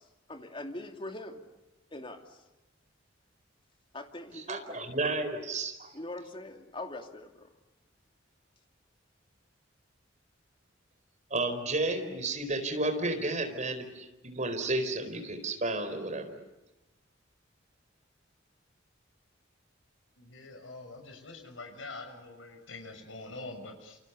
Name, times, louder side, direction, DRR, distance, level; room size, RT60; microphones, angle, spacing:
voice 1, 0.0-1.4 1.9-2.4 3.9-4.8 5.9-7.5, left 1 dB, 25° left, 5 dB, 2.7 m, -42 dB
voice 2, 4.5-5.9 11.3-16.4, right 2 dB, 40° right, 7 dB, 4.5 m, -32 dB
voice 3, 20.2-24.0, left 2 dB, 80° left, 4 dB, 6.7 m, -45 dB
29.0 x 28.5 x 7.0 m, 1.0 s
head